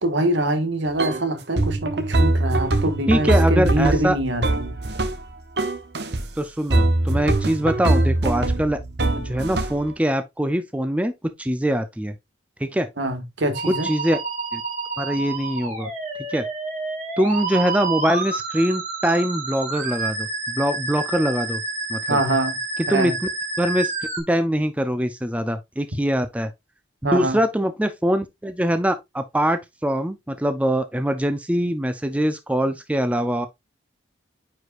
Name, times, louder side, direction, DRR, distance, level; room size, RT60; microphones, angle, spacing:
voice 1, 0.0-4.7 13.0-13.9 22.1-22.6 22.9-23.2 27.0-27.4, right 1 dB, 75° right, 1.6 m, -24 dB
sound 1, 1.0-1.2 1.6-5.3 5.6-6.3 6.7-9.9, right 2 dB, 60° right, 1.0 m, -22 dB
voice 2, 3.1-4.2 6.4-8.8 9.2-12.1 12.6-12.9 13.7-14.2 14.5-14.6 15.0-15.9 16.3-16.4 17.2-21.6 21.9-22.2 22.9-23.1 23.6-23.9 24.2-26.5 27.0-33.5, equal, 5° right, 0.5 m, -23 dB
Musical instrument, 13.5-24.2, right 3 dB, 40° right, 3.1 m, -29 dB
9.4 x 4.8 x 2.5 m
head